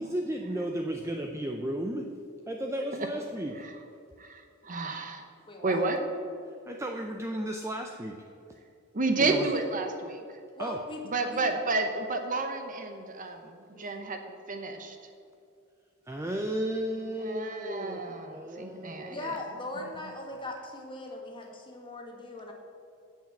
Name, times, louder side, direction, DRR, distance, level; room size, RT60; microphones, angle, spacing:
voice 1, 0.0-2.1 2.5-3.6 6.7-8.2 9.2-9.5 10.6-10.8 16.1-18.0 18.3-19.3, right 1 dB, 15° right, 2 dB, 0.6 m, -34 dB
voice 2, 4.2-5.2 5.6-6.0 8.9-10.2 11.1-14.2 14.5-15.0 17.2-19.2, right 3 dB, 40° right, 5 dB, 0.9 m, -31 dB
voice 3, 5.5-5.9 10.5-11.5 13.7-14.0 19.1-22.5, left 2 dB, 25° left, 1 dB, 1.6 m, -39 dB
9.2 x 7.4 x 7.3 m, 2.5 s
head